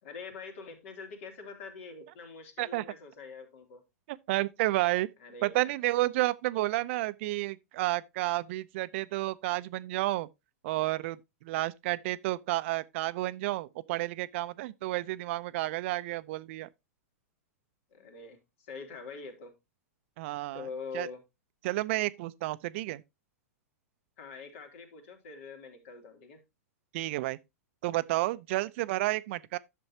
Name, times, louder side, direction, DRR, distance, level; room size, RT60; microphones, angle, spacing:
voice 1, 0.0-3.8 5.2-5.7 17.9-19.6 20.5-21.2 24.2-26.4, left 4 dB, 60° left, 2.9 m, -44 dB
voice 2, 4.1-5.1 5.4-10.3 10.6-16.7 20.2-20.7 20.9-21.1 21.6-23.0 26.9-27.4 27.8-29.6, right 18 dB, 55° right, 0.6 m, -31 dB
11.0 x 6.9 x 2.8 m
hypercardioid pair, 110°, 8 cm